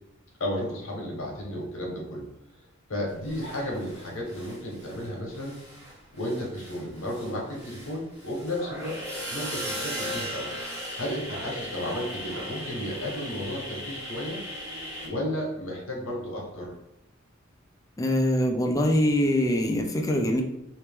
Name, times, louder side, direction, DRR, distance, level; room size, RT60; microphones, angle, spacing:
voice 1, 0.4-2.3 2.9-5.6 6.1-9.0 9.3-10.5 10.9-14.4 15.0-16.7, left 1 dB, 85° left, -2 dB, 1.2 m, -33 dB
sound 1, 3.2-5.1 5.3-15.1, equal, 10° right, 1.5 m, -37 dB
voice 2, 18.0-20.4, left 1 dB, 15° left, 2 dB, 0.4 m, -23 dB
3.0 x 3.0 x 3.4 m, 0.84 s
head